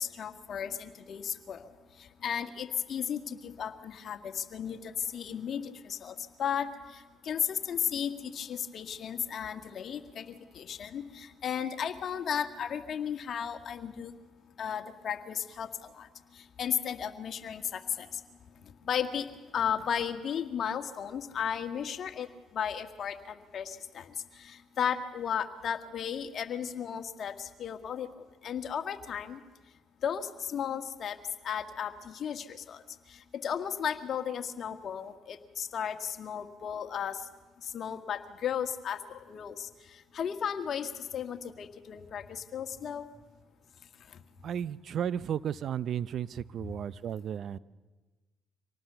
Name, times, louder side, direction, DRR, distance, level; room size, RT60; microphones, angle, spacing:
voice 1, 0.0-1.7 2.0-14.1 14.6-16.1 16.4-18.2 18.8-19.3 19.5-22.3 22.5-28.1 28.4-29.4 30.0-31.2 31.4-32.8 33.3-37.2 37.6-39.7 40.1-43.1, left 8 dB, 55° left, 8 dB, 1.7 m, -35 dB
voice 2, 44.4-47.6, right 9 dB, 60° right, 19 dB, 0.6 m, -34 dB
25.5 x 18.5 x 6.9 m, 1.3 s
hypercardioid pair, 60°, 0 cm